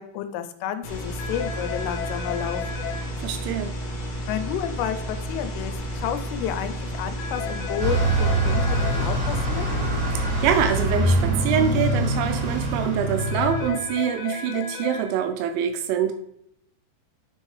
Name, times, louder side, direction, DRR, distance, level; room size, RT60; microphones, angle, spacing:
voice 1, 0.0-2.6 4.3-9.7, left 10 dB, 90° left, 9 dB, 3.1 m, -31 dB
sound 1, 0.8-10.8, equal, 55° left, 2.5 m, -32 dB
sound 2, 1.2-3.0 7.2-9.0 13.2-15.0, left 6 dB, 75° left, 3.2 m, -34 dB
voice 2, 3.2-3.7 10.1-16.1, right 8 dB, 85° right, 8 dB, 2.8 m, -25 dB
Bus, 7.8-13.7, right 1 dB, 55° right, 3.0 m, -24 dB
9.2 x 4.5 x 3.2 m, 0.74 s
omnidirectional pair, 5.7 m